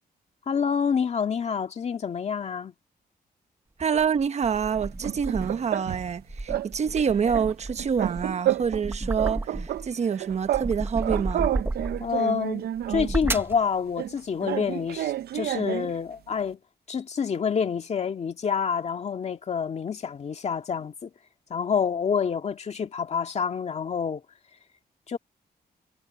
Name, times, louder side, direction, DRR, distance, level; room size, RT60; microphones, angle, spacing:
voice 1, 0.5-2.7 12.0-16.6 16.9-21.1 21.5-24.2 25.1-25.2, left 6 dB, 40° left, 1.9 m, -27 dB
sound 1, 3.8-5.7 6.2-9.9 10.3-12.2 12.8-13.6, right 2 dB, 15° right, 0.9 m, -33 dB
voice 2, 3.8-11.5, right 6 dB, 45° right, 1.0 m, -27 dB
sound 2, 4.8-6.2 6.5-6.7 7.0-8.9 9.2-10.7 11.0-13.2 14.0-16.0, right 12 dB, 75° right, 0.5 m, -30 dB
wide cardioid pair, 155°, 17 cm